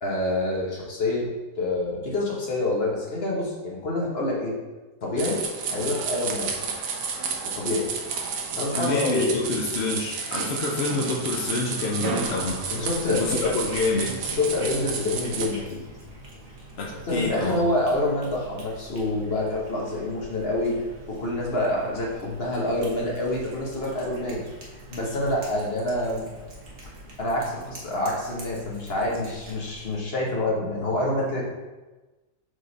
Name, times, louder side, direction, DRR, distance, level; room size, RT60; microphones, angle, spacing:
voice 1, 0.0-1.3 1.6-4.5 5.0-5.4 5.7-6.5 7.5-7.9 8.5-9.4 12.7-13.5 14.3-15.8 17.1-24.4 24.9-26.3 26.8-31.4, left 2 dB, 40° left, -3 dB, 1.4 m, -27 dB
sound 1, 5.2-15.5, right 5 dB, 80° right, 1.4 m, -31 dB
voice 2, 8.8-12.6 13.1-14.2 16.8-17.6, left 3 dB, 55° left, -1 dB, 0.7 m, -27 dB
Cat, 12.2-30.0, equal, 50° right, 1.5 m, -44 dB
6.4 x 3.9 x 4.0 m, 1.2 s
omnidirectional pair, 1.8 m